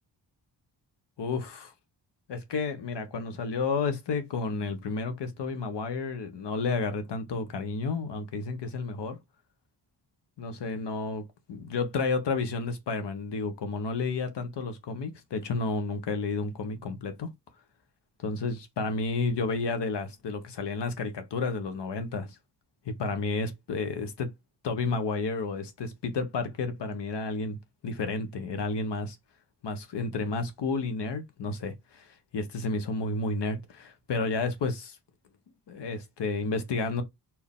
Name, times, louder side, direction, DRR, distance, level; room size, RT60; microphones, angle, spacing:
voice 1, 1.2-1.7 2.3-9.2 10.4-11.2 11.5-17.3 18.2-22.3 22.8-24.3 24.6-27.6 27.8-29.2 29.6-35.0 35.7-37.0, left 4 dB, 85° left, 1.2 m, -31 dB
4.5 x 2.9 x 3.5 m
wide cardioid pair, 175°, 41 cm